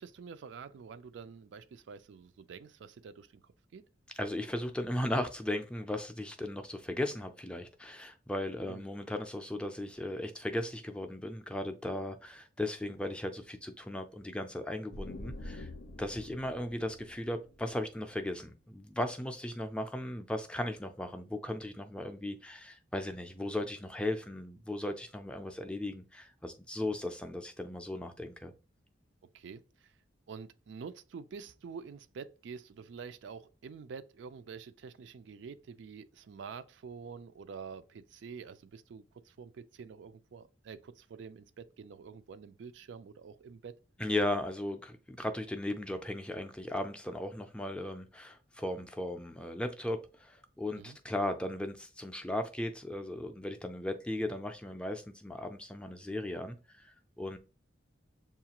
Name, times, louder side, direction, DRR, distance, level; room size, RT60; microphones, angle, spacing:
voice 1, 0.0-3.8 8.6-8.8 29.3-29.9 30.3-43.7 50.7-51.0, right 5 dB, 75° right, 0.3 m, -47 dB
voice 2, 4.2-15.7 16.0-28.5 44.0-56.6 56.8-57.4, left 1 dB, 5° left, 0.4 m, -37 dB
sound 1, 14.9-18.5, left 1 dB, 80° left, 0.5 m, -46 dB
7.1 x 2.4 x 2.9 m
head